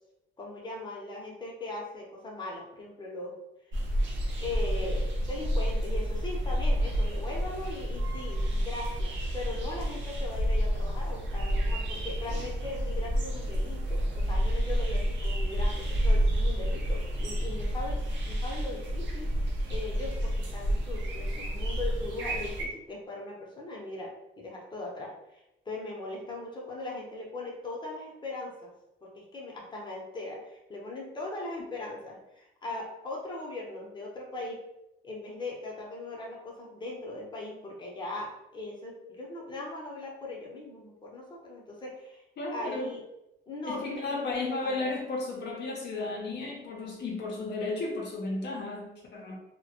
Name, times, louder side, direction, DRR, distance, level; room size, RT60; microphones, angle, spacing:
voice 1, 0.4-3.4 4.4-19.3 19.7-28.7 29.0-34.6 35.0-42.2 42.5-43.0 43.5-44.9, left 2 dB, 25° left, -2 dB, 0.7 m, -39 dB
sound 1, 3.7-22.7, equal, 70° right, 0.6 m, -29 dB
voice 2, 42.4-42.9 43.6-49.4, left 2 dB, 60° left, -2 dB, 0.6 m, -34 dB
2.1 x 2.1 x 2.8 m, 0.87 s
cardioid pair, 90°, 20 cm